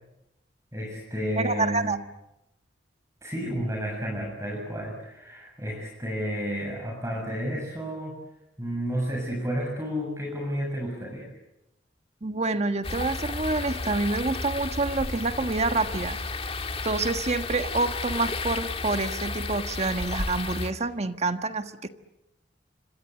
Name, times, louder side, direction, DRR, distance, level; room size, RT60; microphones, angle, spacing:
voice 1, 0.7-2.0 3.2-8.2 8.6-11.3, equal, 15° right, 0 dB, 7.2 m, -31 dB
voice 2, 1.4-2.0 12.2-16.2 16.8-21.9, right 3 dB, 40° right, 8 dB, 1.4 m, -27 dB
sound 1, 12.8-20.7, left 3 dB, 35° left, 1.7 m, -32 dB
27.0 x 26.0 x 8.4 m, 0.87 s
head